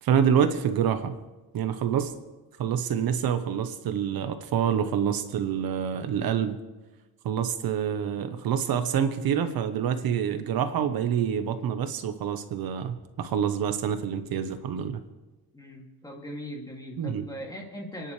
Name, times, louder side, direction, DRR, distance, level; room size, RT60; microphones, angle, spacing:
voice 1, 0.0-1.1 1.5-2.1 2.6-6.6 7.2-15.0 17.0-17.3, right 8 dB, 65° right, 9 dB, 1.2 m, -27 dB
voice 2, 15.5-18.1, equal, 10° left, -1 dB, 2.7 m, -40 dB
29.5 x 10.5 x 3.4 m, 1.1 s
cardioid pair, 135°, 38 cm